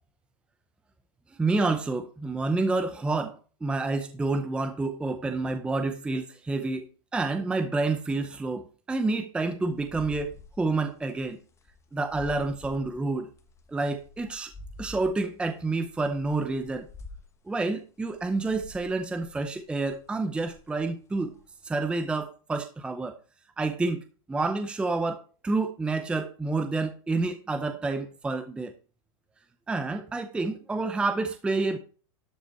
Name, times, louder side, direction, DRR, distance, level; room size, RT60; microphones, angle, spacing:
voice 1, 1.4-3.4 3.6-11.4 11.9-13.3 13.7-14.5 14.8-16.9 17.5-21.3 21.6-23.1 23.6-24.0 24.3-28.7 29.7-31.8, right 3 dB, 5° right, 0.7 m, -29 dB
sound 1, 9.6-17.4 18.0-20.2 20.5-21.7, left 3 dB, 15° left, 1.1 m, -48 dB
12.5 x 6.1 x 4.4 m
supercardioid pair, 150°, 17 cm